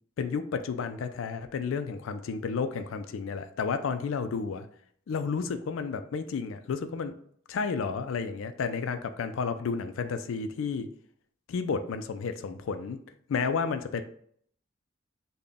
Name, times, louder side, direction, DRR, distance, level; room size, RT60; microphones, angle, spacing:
voice 1, 0.2-4.7 5.1-7.1 7.5-10.9 11.5-13.0 13.3-14.0, left 5 dB, 75° left, 9 dB, 0.3 m, -31 dB
3.4 x 2.2 x 3.8 m, 0.62 s
head